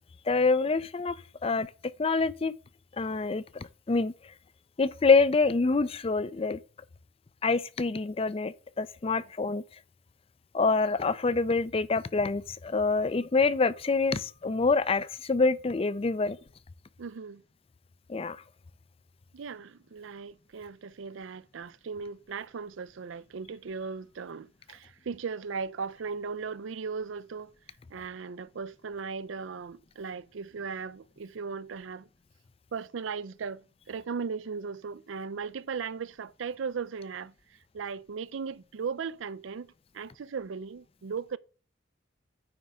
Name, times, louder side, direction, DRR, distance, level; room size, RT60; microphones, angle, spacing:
voice 1, 0.3-1.2 1.4-1.7 2.0-2.5 3.0-4.1 4.8-6.6 7.4-9.6 10.5-16.4 18.1-18.4, left 4 dB, 30° left, 0.4 m, -26 dB
voice 2, 17.0-17.4 19.3-27.5 27.9-32.1 32.7-41.4, right 5 dB, 75° right, 0.5 m, -37 dB
9.5 x 3.5 x 6.2 m
head